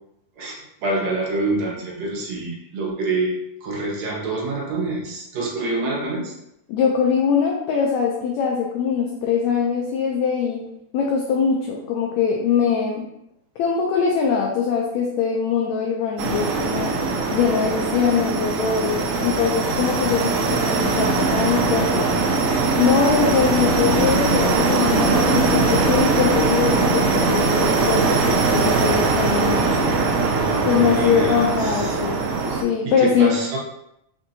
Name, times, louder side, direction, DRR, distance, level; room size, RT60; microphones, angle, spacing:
voice 1, 0.4-6.3 30.3-32.0 32.9-33.6, right 2 dB, 70° right, -3 dB, 2.0 m, -26 dB
voice 2, 6.7-10.6 10.9-13.0 13.6-16.9 17.3-22.1 22.8-29.8 30.6-32.2 32.5-33.3, left 6 dB, 80° left, -1 dB, 1.7 m, -22 dB
sound 1, 16.2-32.6, right 3 dB, 90° right, 1.4 m, -21 dB
5.8 x 2.6 x 2.7 m, 0.80 s
omnidirectional pair, 3.6 m